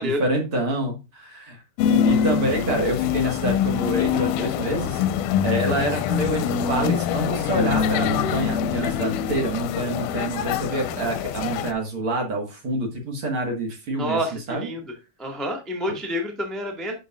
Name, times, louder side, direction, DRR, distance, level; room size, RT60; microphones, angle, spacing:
voice 1, 0.0-1.6 1.9-5.0 5.4-14.2 14.5-14.7, right 1 dB, 50° right, 0 dB, 2.1 m, -27 dB
sound 1, 1.8-11.7, left 8 dB, 85° left, 2.2 m, -24 dB
voice 2, 14.0-14.9 15.2-16.9, equal, ahead, 1 dB, 0.8 m, -28 dB
11.5 x 5.4 x 2.4 m, 0.27 s
omnidirectional pair, 3.7 m